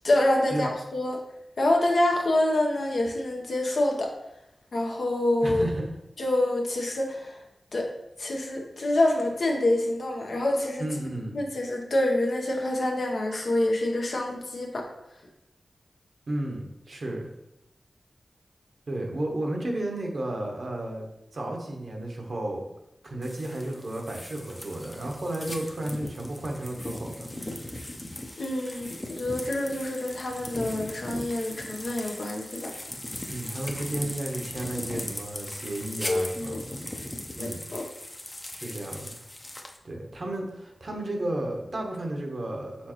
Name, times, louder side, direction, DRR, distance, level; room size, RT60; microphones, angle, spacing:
voice 1, 0.0-1.2 1.6-4.1 4.7-5.6 6.2-7.4 7.7-7.9 8.2-10.9 11.3-14.9 28.4-32.7 36.1-36.6 37.4-37.8, left 1 dB, 75° left, 0 dB, 0.8 m, -26 dB
voice 2, 5.4-5.9 10.8-11.4 16.3-17.3 18.9-21.1 21.3-22.6 23.0-27.3 33.3-36.6 37.4-37.7 38.5-39.1 39.8-42.9, right 1 dB, 65° right, 1 dB, 0.9 m, -33 dB
sound 1, 23.2-39.8, left 1 dB, 25° left, 0.6 m, -39 dB
4.4 x 3.9 x 3.0 m, 0.88 s
cardioid pair, 45°, 0 cm